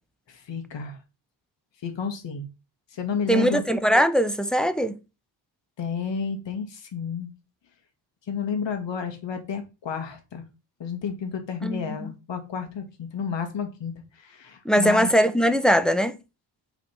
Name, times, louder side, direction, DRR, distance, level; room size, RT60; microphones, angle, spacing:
voice 1, 0.3-1.0 1.8-2.5 2.9-3.6 5.8-7.3 8.3-10.4 10.8-15.1, left 6 dB, 65° left, 2.2 m, -31 dB
voice 2, 3.3-5.0 11.6-12.1 14.6-16.2, equal, ahead, 0.8 m, -21 dB
8.4 x 4.2 x 4.4 m
cardioid pair, 100°, 47 cm